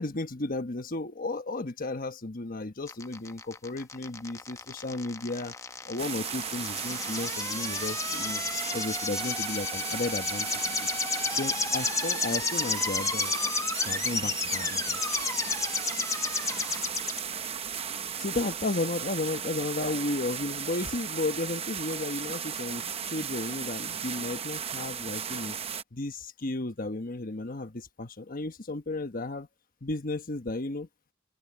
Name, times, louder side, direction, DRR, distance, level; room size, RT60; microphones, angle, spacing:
voice 1, 0.0-5.6 5.8-8.4 8.7-10.9 11.3-13.3 13.8-15.0 18.2-25.6 25.9-29.5 29.8-30.9, left 2 dB, 45° left, 1.2 m, -34 dB
sound 1, 2.9-17.2, left 4 dB, 15° left, 0.9 m, -32 dB
sound 2, 6.0-25.8, right 7 dB, 30° right, 0.8 m, -36 dB
head